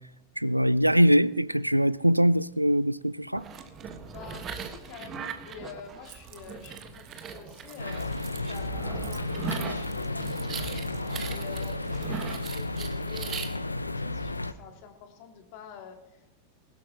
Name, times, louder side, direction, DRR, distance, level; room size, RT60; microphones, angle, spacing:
voice 1, 0.4-3.4, equal, 90° right, 0.3 m, -22 dB
sound 1, 3.3-13.5, right 6 dB, 30° right, 1.4 m, -39 dB
voice 2, 4.1-10.8 11.3-16.4, left 7 dB, 45° left, 2.2 m, -47 dB
Keys jangling, 6.1-12.8, right 13 dB, 45° right, 1.3 m, -53 dB
sound 2, 7.8-14.5, left 2 dB, 85° left, 0.6 m, -33 dB
20.5 x 12.5 x 2.9 m
figure-of-eight pair, 90°, 0 cm